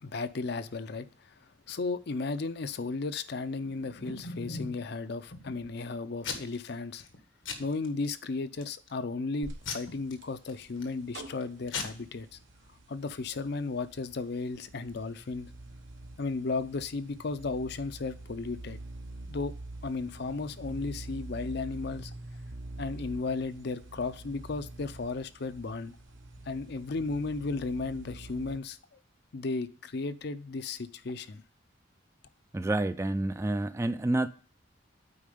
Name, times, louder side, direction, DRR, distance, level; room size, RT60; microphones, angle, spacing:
voice 1, 0.0-1.3 1.7-7.1 7.6-12.4 12.9-15.5 16.2-18.8 19.3-19.5 19.8-22.1 22.8-26.0 26.5-29.0 29.3-31.4, left 3 dB, 55° left, 0.5 m, -35 dB
Packing tape duct tape / Tearing, 3.6-4.8 5.3-5.8 6.2-6.7 7.0-7.2 7.5-8.2 8.6-9.0 9.7-10.9 11.4-11.5 11.7-11.8, left 4 dB, 90° left, 1.5 m, -39 dB
sound 1, 9.4-28.6, right 2 dB, 85° right, 1.2 m, -46 dB
voice 2, 32.5-34.3, right 2 dB, 15° right, 0.3 m, -28 dB
8.6 x 4.7 x 5.0 m
head